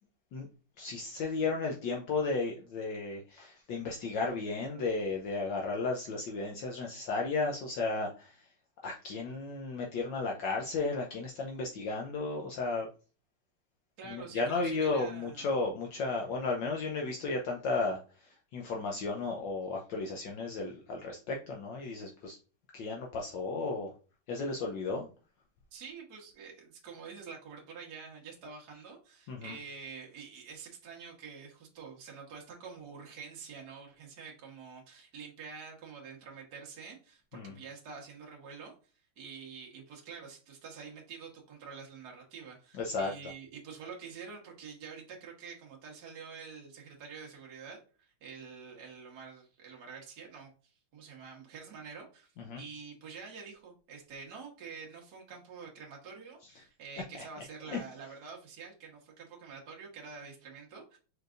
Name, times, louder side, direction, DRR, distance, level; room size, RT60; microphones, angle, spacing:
voice 1, 0.8-8.3 8.8-12.9 14.1-18.0 18.5-22.4 22.7-23.9 24.3-25.1 29.3-29.5 37.3-37.5 42.8-43.1 52.4-52.6 57.7-57.8, left 3 dB, 70° left, 0 dB, 1.3 m, -34 dB
voice 2, 14.0-15.5 25.7-38.7 39.2-50.5 50.9-61.0, right 5 dB, 55° right, -1 dB, 1.6 m, -47 dB
4.7 x 4.5 x 2.5 m, 0.35 s
omnidirectional pair, 2.3 m